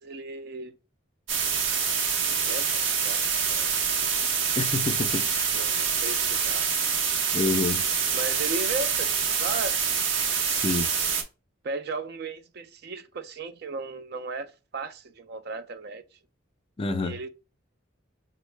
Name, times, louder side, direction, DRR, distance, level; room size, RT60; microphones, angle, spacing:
voice 1, 0.0-0.7 2.2-3.7 4.0-4.1 5.5-6.7 8.1-9.8 11.6-16.0 17.0-17.3, right 3 dB, 50° right, 0.4 m, -36 dB
sound 1, 1.3-11.2, right 6 dB, 70° right, 0.8 m, -26 dB
voice 2, 4.6-5.5 7.3-7.9 10.5-10.9 16.8-17.2, left 3 dB, 25° left, 0.3 m, -28 dB
5.3 x 2.0 x 3.1 m
head